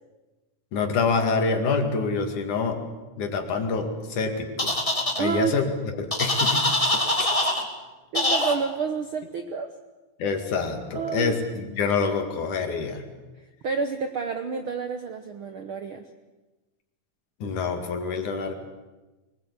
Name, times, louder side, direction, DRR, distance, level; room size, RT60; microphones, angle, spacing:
voice 1, 0.7-2.8 3.2-4.8 5.2-5.7 6.0-7.5 10.2-13.1 17.4-18.5, left 4 dB, 65° left, 5 dB, 3.6 m, -26 dB
sound 1, 4.6-5.2 6.1-7.6 8.1-8.5, left 1 dB, 10° left, 2.0 m, -23 dB
voice 2, 5.2-5.6 8.1-9.7 10.9-11.4 13.6-16.1, right 5 dB, 65° right, 7 dB, 1.3 m, -29 dB
24.0 x 20.5 x 8.3 m, 1.2 s
omnidirectional pair, 3.8 m